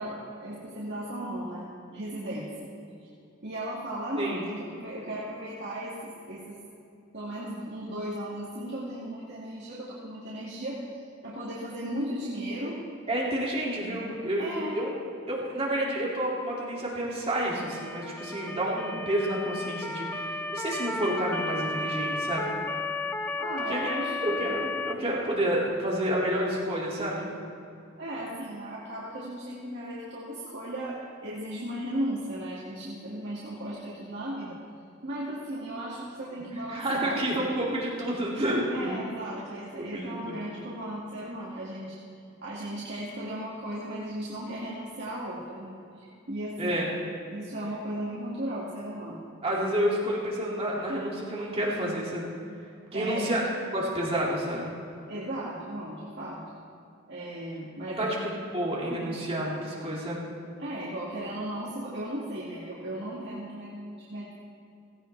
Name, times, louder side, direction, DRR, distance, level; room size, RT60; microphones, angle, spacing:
voice 1, 0.0-2.7 3.4-6.6 7.1-10.8 11.2-12.8 14.4-14.8 23.4-24.4 28.0-34.6 35.0-37.2 38.7-42.0 42.4-46.8 47.3-49.2 52.9-53.3 55.1-56.4 57.1-58.3 60.6-64.3, right 1 dB, 50° right, -7 dB, 2.1 m, -36 dB
voice 2, 13.1-14.9 15.3-22.5 23.7-24.0 24.2-27.3 36.7-38.9 39.8-40.5 46.6-46.9 49.4-52.3 52.9-53.4 53.7-54.7 57.9-60.2, right 1 dB, 25° right, -5 dB, 2.5 m, -29 dB
Motor vehicle (road) / Siren, 17.5-24.9, left 2 dB, 10° left, 0.4 m, -33 dB
17.0 x 16.5 x 3.4 m, 2.6 s
head